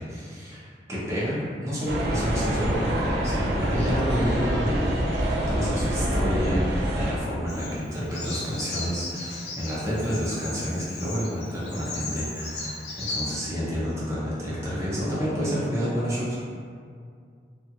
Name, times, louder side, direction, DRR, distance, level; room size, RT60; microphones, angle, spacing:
voice 1, 0.0-2.9 3.2-16.4, equal, 15° right, -8 dB, 0.6 m, -29 dB
sound 1, 1.9-7.1, right 1 dB, 70° right, 0.4 m, -26 dB
Bird vocalization bird call bird song, 7.5-13.3, left 2 dB, 70° left, 0.5 m, -36 dB
2.8 x 2.5 x 2.2 m, 2.2 s
head